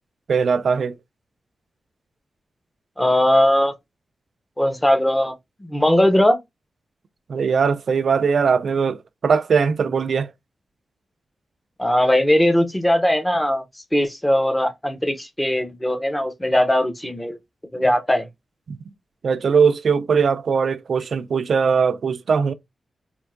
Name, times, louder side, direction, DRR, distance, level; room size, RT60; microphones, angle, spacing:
voice 1, 0.3-0.9 7.3-10.3 18.7-18.8 19.2-22.5, right 6 dB, 65° right, 0.4 m, -20 dB
voice 2, 3.0-3.7 4.6-5.3 5.6-6.4 11.8-13.6 13.9-17.4 17.7-18.3, left 1 dB, 10° left, 0.7 m, -19 dB
4.4 x 2.6 x 2.5 m
wide cardioid pair, 110°, 0 cm